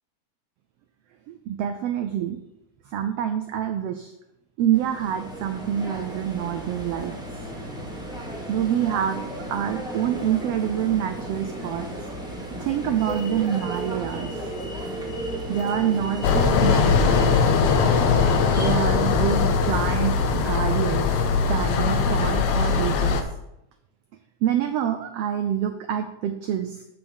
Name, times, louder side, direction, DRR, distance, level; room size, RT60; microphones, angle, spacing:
voice 1, 1.3-2.4 2.9-4.1 4.6-7.1 8.5-9.2 9.5-11.9 12.6-14.4 15.5-17.5 18.6-21.1 21.5-23.2 24.4-26.8, right 10 dB, 85° right, 7 dB, 1.3 m, -26 dB
sound 1, 4.7-18.7, right 1 dB, ahead, 0.9 m, -34 dB
sound 2, 13.1-19.7, right 1 dB, 55° right, 1.2 m, -48 dB
sound 3, 16.2-23.2, left 5 dB, 70° left, 1.5 m, -21 dB
8.0 x 4.6 x 7.2 m, 0.85 s
omnidirectional pair, 3.4 m